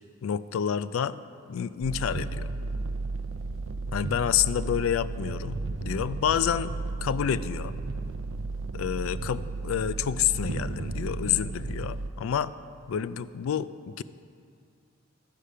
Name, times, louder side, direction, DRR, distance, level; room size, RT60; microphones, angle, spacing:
voice 1, 0.2-1.2 1.5-2.5 3.9-6.7 7.0-7.7 8.7-12.5 12.9-14.0, left 9 dB, 75° left, 15 dB, 0.3 m, -28 dB
sound 1, 1.8-12.1, right 3 dB, 70° right, 0.5 m, -34 dB
12.5 x 5.0 x 5.5 m, 2.2 s
head